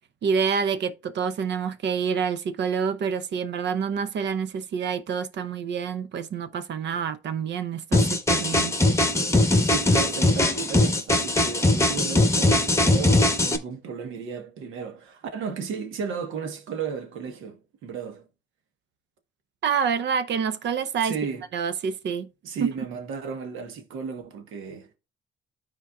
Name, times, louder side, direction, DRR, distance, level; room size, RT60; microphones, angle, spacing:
voice 1, 0.2-8.7 19.6-21.2 21.5-22.3 22.6-22.7, right 6 dB, 65° right, 0.7 m, -27 dB
sound 1, 7.9-13.6, left 1 dB, 15° left, 1.1 m, -21 dB
voice 2, 9.6-18.2 21.0-21.4 22.4-24.9, right 6 dB, 85° right, 1.3 m, -34 dB
13.0 x 4.5 x 2.4 m
cardioid pair, 90°, 20 cm